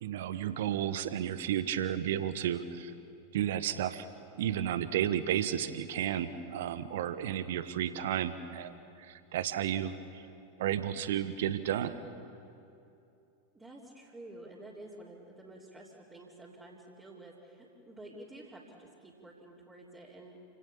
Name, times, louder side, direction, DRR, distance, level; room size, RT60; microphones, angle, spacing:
voice 1, 0.0-2.9 3.3-4.1 4.4-10.2 10.6-11.9, right 10 dB, 55° right, 12 dB, 1.2 m, -32 dB
voice 2, 13.5-20.4, right 1 dB, 15° right, -7 dB, 3.6 m, -50 dB
29.5 x 17.5 x 7.2 m, 2.7 s
figure-of-eight pair, 90°, 0 cm